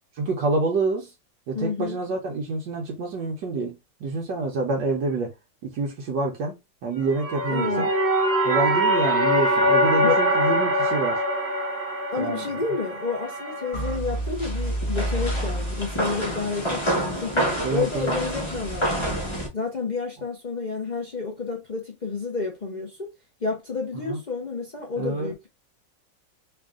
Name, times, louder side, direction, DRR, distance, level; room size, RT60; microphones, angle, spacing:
voice 1, 0.2-1.1 1.5-3.7 4.0-5.3 5.6-6.5 6.8-7.9 8.4-11.2 12.2-12.5 17.6-18.2 24.1-24.2 25.0-25.3, right 3 dB, 70° right, 1.3 m, -27 dB
voice 2, 1.5-2.0 7.5-7.9 10.0-10.2 12.1-19.0 19.5-23.1 23.4-25.5, left 4 dB, 70° left, 0.4 m, -30 dB
sound 1, 7.0-14.0, equal, 40° right, 1.4 m, -23 dB
sound 2, 13.7-19.5, right 1 dB, 25° left, 0.7 m, -27 dB
3.6 x 2.5 x 3.5 m
omnidirectional pair, 2.1 m